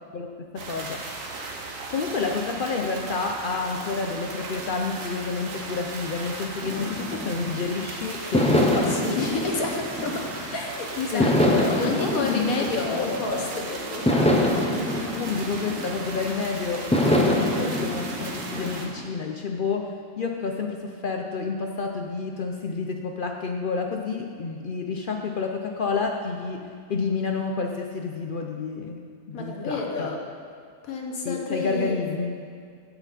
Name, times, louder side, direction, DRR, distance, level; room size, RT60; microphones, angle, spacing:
voice 1, 0.1-1.0 1.9-9.0 11.1-13.5 15.1-30.1 31.2-32.3, left 4 dB, 60° left, 3 dB, 0.6 m, -29 dB
sound 1, 0.6-18.9, right 3 dB, 70° right, 1.5 m, -36 dB
sound 2, 6.6-7.7 8.3-10.6 11.2-13.5 14.1-16.3 16.9-19.1, left 1 dB, 10° left, 0.5 m, -25 dB
voice 2, 8.9-14.3 29.3-30.2 30.8-32.0, left 3 dB, 85° left, 1 dB, 1.6 m, -30 dB
16.0 x 5.8 x 4.1 m, 2.2 s
omnidirectional pair, 1.4 m